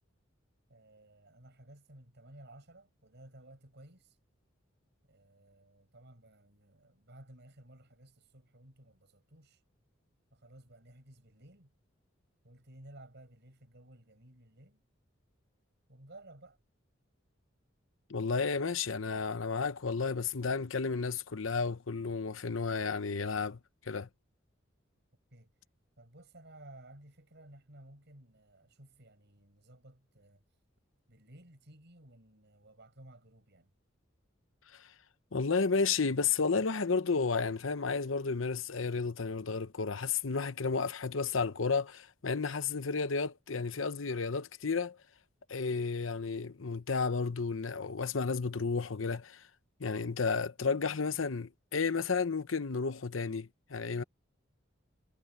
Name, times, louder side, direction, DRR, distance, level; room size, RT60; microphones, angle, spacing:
voice 1, 0.7-4.2 5.0-9.6 10.3-11.7 12.4-14.8 15.9-16.6 25.3-25.5 26.0-30.4 31.1-33.7, right 1 dB, 60° right, 5.9 m, -56 dB
voice 2, 18.1-23.6 23.9-24.1 34.7-34.9 35.3-45.0 45.5-49.4 49.8-54.0, left 4 dB, 80° left, 0.9 m, -32 dB
head